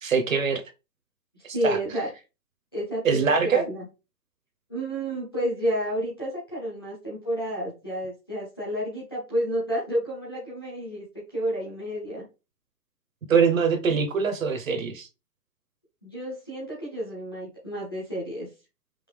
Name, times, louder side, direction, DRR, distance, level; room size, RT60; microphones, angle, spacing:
voice 1, 0.0-0.6 1.6-1.8 3.0-3.6 13.3-15.1, right 5 dB, 55° right, 0.9 m, -23 dB
voice 2, 1.4-2.1 2.7-3.9 4.7-12.3 16.0-18.5, right 1 dB, 15° left, 0.8 m, -30 dB
5.1 x 2.7 x 3.4 m
hypercardioid pair, 180°, 49 cm